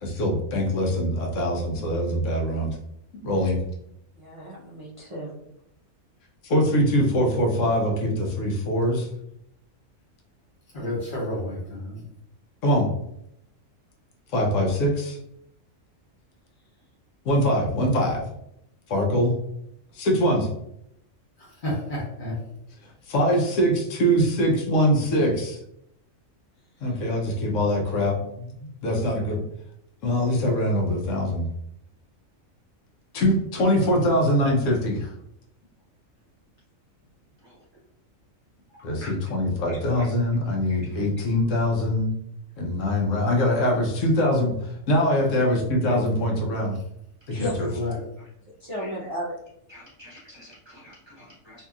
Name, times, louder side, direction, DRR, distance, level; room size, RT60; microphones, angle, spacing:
voice 1, 0.0-2.8 3.2-3.6 6.4-9.1 12.6-12.9 14.3-15.2 17.2-18.2 18.9-19.3 19.9-20.5 22.8-25.6 26.8-29.4 30.0-31.4 33.1-35.1 38.8-42.1 42.6-46.8 47.3-47.7, equal, 75° left, 0 dB, 1.0 m, -23 dB
voice 2, 4.1-5.3 47.3-47.5 48.6-49.3, equal, 55° right, -6 dB, 0.3 m, -33 dB
voice 3, 10.7-12.0 21.4-22.4 47.6-48.0, left 1 dB, 45° left, -4 dB, 1.0 m, -30 dB
voice 4, 37.4-37.8 38.7-39.1 39.7-40.0 40.7-41.0 45.8-45.9 47.3-47.5 48.2-48.3 48.8-48.9 49.7-51.6, left 1 dB, 25° right, -8 dB, 0.7 m, -48 dB
2.7 x 2.7 x 2.3 m, 0.77 s
omnidirectional pair, 1.4 m